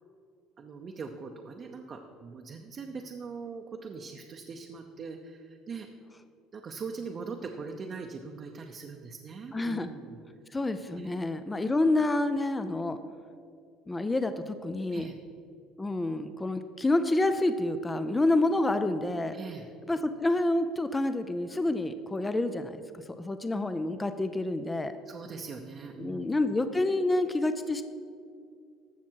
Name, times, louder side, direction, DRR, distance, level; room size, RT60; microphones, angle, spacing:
voice 1, 0.6-5.9 6.5-10.2 10.9-11.1 11.5-11.6 14.9-15.2 19.3-19.6 25.1-26.3, right 5 dB, 35° right, 2 dB, 0.7 m, -41 dB
voice 2, 9.5-9.9 10.5-13.0 13.9-15.1 15.8-19.3 19.9-22.8 23.1-24.9 26.0-27.8, left 2 dB, 15° left, 10 dB, 0.4 m, -28 dB
15.0 x 5.9 x 4.6 m, 2.3 s
cardioid pair, 120°, 0 cm